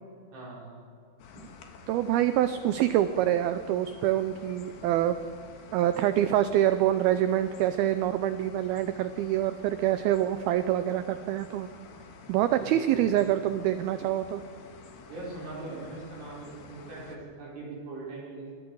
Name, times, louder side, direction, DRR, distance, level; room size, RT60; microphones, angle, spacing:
voice 1, 0.3-0.8 1.4-1.5 12.5-13.2 15.1-18.6, right 2 dB, 70° right, -6 dB, 7.0 m, -41 dB
sound 1, 1.2-17.2, left 5 dB, 65° left, 3.5 m, -50 dB
voice 2, 1.9-5.2 5.7-11.7 12.3-14.4, right 12 dB, 85° right, 11 dB, 2.1 m, -26 dB
27.5 x 22.0 x 4.8 m, 2.5 s
omnidirectional pair, 5.1 m